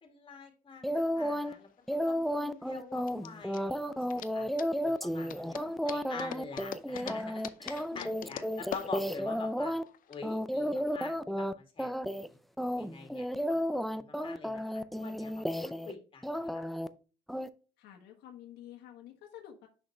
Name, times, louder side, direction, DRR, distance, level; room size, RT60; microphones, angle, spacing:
voice 1, 0.0-4.5 4.8-9.8 10.1-12.4 12.8-13.6 13.9-16.6, left 4 dB, 30° left, 4 dB, 2.2 m, -46 dB
sound 1, 0.8-1.5 1.9-9.8 10.2-11.5 11.8-12.3 12.6-15.9 16.2-16.9 17.3-17.5, equal, ahead, 0.4 m, -33 dB
sound 2, 1.3-10.2, left 10 dB, 55° left, 0.6 m, -45 dB
voice 2, 7.9-8.4 17.8-19.7, left 11 dB, 80° left, 1 dB, 1.5 m, -50 dB
6.4 x 5.8 x 3.2 m, 0.35 s
cardioid pair, 110°, 17 cm